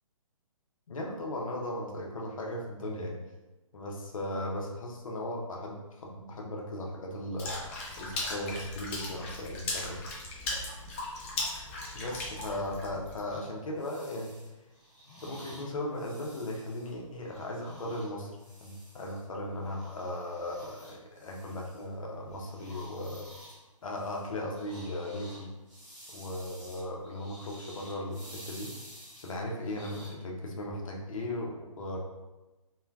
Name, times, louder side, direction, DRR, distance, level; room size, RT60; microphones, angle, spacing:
voice 1, 0.9-3.2 3.7-7.5 8.0-10.0 11.9-14.4 15.2-18.3 18.6-23.3 23.8-25.5 26.1-28.7 29.2-32.0, left 1 dB, 75° left, -1 dB, 0.7 m, -37 dB
Water / Splash splatter, 7.4-13.2, left 2 dB, 25° left, 0.4 m, -37 dB
sound 1, 13.3-19.2 19.6-22.0 22.3-30.1, equal, ahead, 0.8 m, -51 dB
3.1 x 2.2 x 2.2 m, 1.1 s
hypercardioid pair, 145°, 17 cm